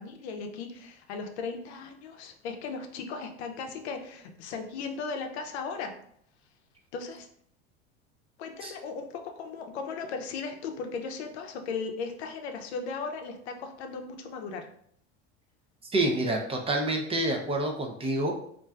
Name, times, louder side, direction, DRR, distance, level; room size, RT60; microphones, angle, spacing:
voice 1, 0.0-6.0 6.9-7.3 8.4-14.7, left 4 dB, 80° left, 5 dB, 0.6 m, -37 dB
voice 2, 15.9-18.3, right 1 dB, 20° right, 2 dB, 0.4 m, -27 dB
3.1 x 2.5 x 2.2 m, 0.67 s
supercardioid pair, 100°, 32 cm